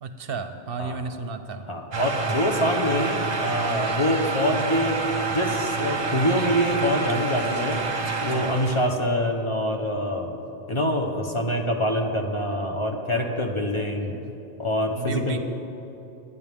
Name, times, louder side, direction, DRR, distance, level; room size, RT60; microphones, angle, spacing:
voice 1, 0.0-1.6 14.0-14.2 15.0-15.4, right 4 dB, 70° right, 9 dB, 0.8 m, -32 dB
voice 2, 1.7-5.0 5.3-7.8 8.2-10.4 10.7-14.1 14.6-15.4, equal, 30° left, 2 dB, 1.0 m, -25 dB
sound 1, 1.9-8.9, right 4 dB, 45° right, 1.0 m, -28 dB
20.0 x 9.9 x 3.6 m, 2.9 s
omnidirectional pair, 1.0 m